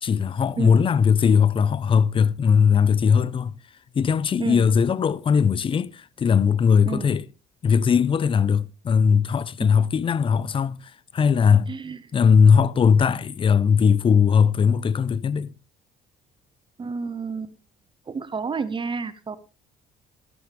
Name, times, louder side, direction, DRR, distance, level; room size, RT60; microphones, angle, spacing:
voice 1, 0.0-3.6 3.9-7.3 7.6-11.7 12.1-15.5, left 6 dB, 30° left, 0.6 m, -19 dB
voice 2, 11.7-12.0 16.8-17.5 18.1-19.4, right 5 dB, 30° right, 0.9 m, -30 dB
13.5 x 13.0 x 3.5 m
cardioid pair, 110°, 17 cm